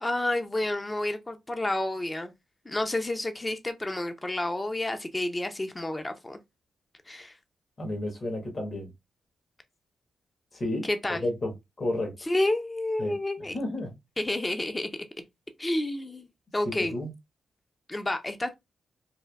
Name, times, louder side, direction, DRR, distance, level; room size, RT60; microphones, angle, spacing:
voice 1, 0.0-2.3 2.7-6.4 7.1-7.3 10.8-11.2 12.2-13.5 14.2-14.9 15.6-16.3 16.5-17.0 17.9-18.5, left 1 dB, 25° left, 0.5 m, -30 dB
voice 2, 7.8-8.9 10.5-11.5 11.8-12.1 13.0-13.2 13.5-13.9 16.6-17.1, left 1 dB, 50° left, 1.3 m, -31 dB
3.4 x 2.5 x 2.3 m
supercardioid pair, 45°, 0 cm